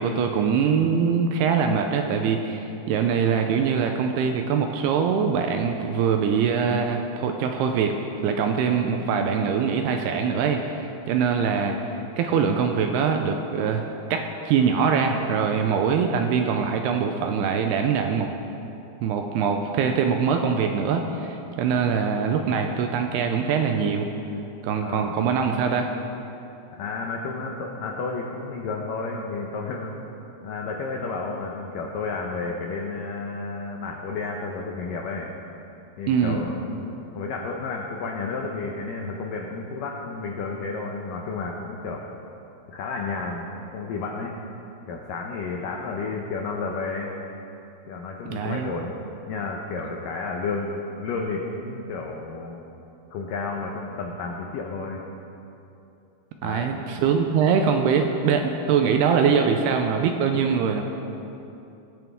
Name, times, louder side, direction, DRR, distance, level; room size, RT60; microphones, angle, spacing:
voice 1, 0.0-8.0 8.2-18.3 19.0-24.1 24.6-25.9 36.1-36.4 48.3-48.7 56.4-60.8, right 6 dB, 80° right, 4 dB, 2.4 m, -23 dB
voice 2, 24.8-25.2 26.8-29.9 30.4-35.3 36.0-36.9 37.2-42.0 42.7-44.3 44.9-47.1 47.9-48.9 49.3-52.6 53.1-55.0 56.4-56.8, left 4 dB, 80° left, 0 dB, 1.9 m, -31 dB
21.0 x 9.1 x 3.6 m, 2.8 s
omnidirectional pair, 5.1 m